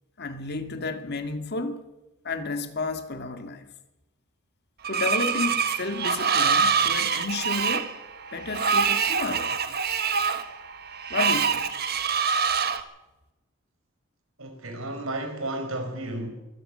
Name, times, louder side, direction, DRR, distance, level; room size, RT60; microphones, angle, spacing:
voice 1, 0.2-1.8 2.2-3.7 4.9-7.9 8.3-9.6 11.1-11.7, left 3 dB, 50° left, 2.0 m, -32 dB
Screech, 4.8-12.8, right 6 dB, 50° right, 1.5 m, -25 dB
voice 2, 14.4-16.3, right 1 dB, 75° right, 5.2 m, -32 dB
24.0 x 16.5 x 6.7 m
head